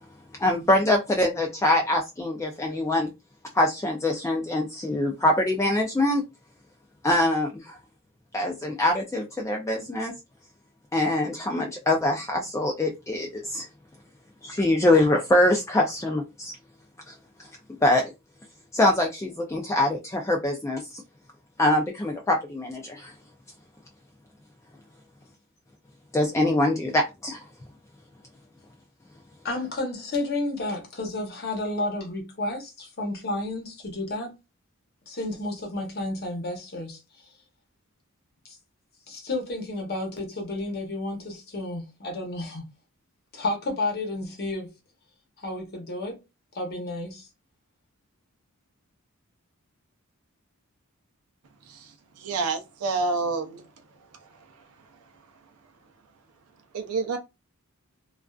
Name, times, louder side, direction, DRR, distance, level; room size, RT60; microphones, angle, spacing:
voice 1, 0.4-3.1 3.5-6.2 7.0-7.8 8.3-10.1 10.9-13.7 14.4-16.5 17.1-17.2 17.8-18.1 18.7-21.0 21.6-23.1 26.1-27.4, left 1 dB, 15° left, 0.3 m, -24 dB
voice 2, 29.4-34.4 35.1-37.0 38.5-38.6 39.1-42.6 43.3-44.7 45.4-46.2 46.5-47.3, left 2 dB, 45° left, 0.8 m, -31 dB
voice 3, 52.2-53.6 56.7-57.2, right 4 dB, 85° right, 0.5 m, -28 dB
2.4 x 2.3 x 2.2 m
head